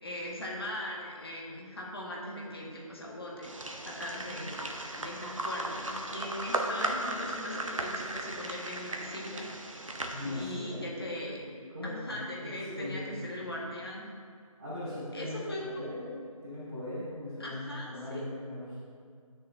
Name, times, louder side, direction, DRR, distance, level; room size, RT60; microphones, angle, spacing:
voice 1, 0.0-3.5 3.9-9.5 10.2-11.4 11.8-14.0 14.9-15.7 17.4-18.2, left 1 dB, 40° left, -3 dB, 1.8 m, -40 dB
sound 1, 3.4-10.7, right 1 dB, 60° right, 1.1 m, -36 dB
voice 2, 10.1-10.8 11.2-13.3 14.6-18.7, left 1 dB, 15° right, -15 dB, 2.6 m, -39 dB
16.5 x 6.6 x 2.8 m, 2.2 s
figure-of-eight pair, 165°, 18 cm